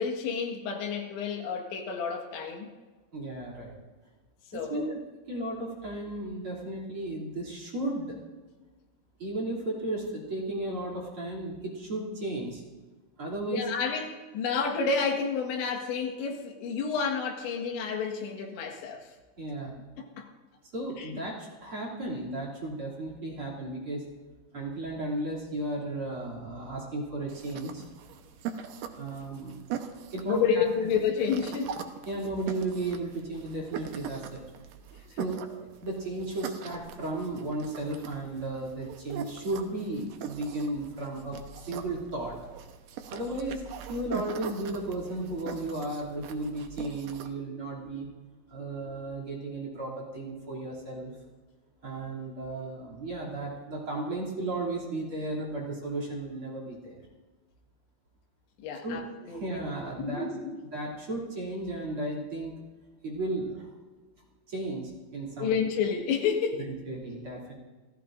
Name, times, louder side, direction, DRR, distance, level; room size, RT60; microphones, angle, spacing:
voice 1, 0.0-2.7 4.5-4.9 13.5-19.1 20.0-20.3 21.0-21.1 30.3-31.8 58.6-59.6 60.0-60.6 65.4-66.7, left 6 dB, 75° left, 2 dB, 3.9 m, -30 dB
voice 2, 3.1-3.7 4.5-5.0 5.3-8.2 9.2-12.6 13.2-13.7 19.4-19.7 20.7-24.0 24.5-27.8 29.0-29.6 30.1-30.6 32.1-34.4 35.2-35.4 35.8-41.4 41.7-42.3 43.1-48.1 48.5-51.1 51.8-57.0 58.8-60.2 60.7-62.5 63.0-63.7 64.5-65.6 66.6-67.5, right 2 dB, 35° right, -1 dB, 3.1 m, -34 dB
sound 1, 27.3-47.3, right 8 dB, 85° right, 1.9 m, -42 dB
29.0 x 14.5 x 2.6 m, 1.3 s
omnidirectional pair, 5.3 m